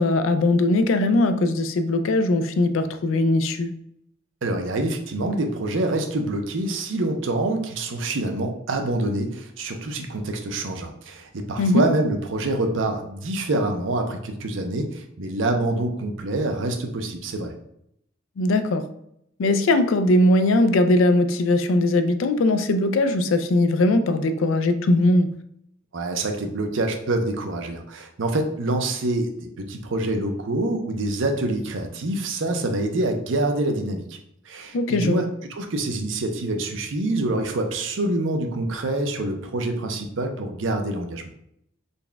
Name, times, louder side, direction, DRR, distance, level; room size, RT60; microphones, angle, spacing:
voice 1, 0.0-3.7 11.6-11.8 18.4-18.8 19.4-25.3 34.7-35.2, left 2 dB, 85° left, 9 dB, 0.4 m, -20 dB
voice 2, 4.4-17.5 25.9-34.2 34.5-41.2, right 2 dB, 75° right, 5 dB, 0.6 m, -26 dB
4.0 x 2.3 x 3.4 m, 0.74 s
head